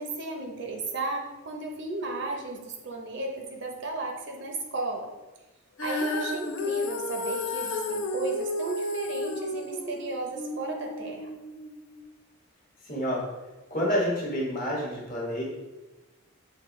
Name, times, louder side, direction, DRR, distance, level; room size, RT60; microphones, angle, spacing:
voice 1, 0.0-5.1 5.8-11.3, right 3 dB, 55° right, 1 dB, 0.6 m, -34 dB
Female singing, 5.8-12.0, left 2 dB, 65° left, 0.6 m, -32 dB
voice 2, 12.9-13.2 13.7-15.4, equal, 40° left, -4 dB, 1.2 m, -28 dB
6.1 x 2.6 x 3.1 m, 1.1 s
head